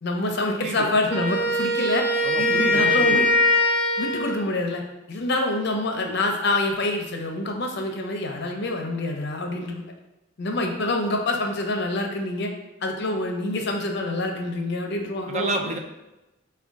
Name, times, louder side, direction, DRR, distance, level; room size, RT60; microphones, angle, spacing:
voice 1, 0.0-3.2 4.0-4.8 5.1-9.9 10.4-12.5 12.8-15.7, left 2 dB, 55° left, 3 dB, 0.6 m, -26 dB
voice 2, 0.6-0.9 2.2-3.3 15.3-15.8, right 3 dB, 35° right, 4 dB, 0.4 m, -30 dB
Wind instrument woodwind instrument, 1.1-4.5, left 2 dB, 50° right, 0.7 m, -22 dB
4.9 x 2.3 x 3.5 m, 0.98 s
head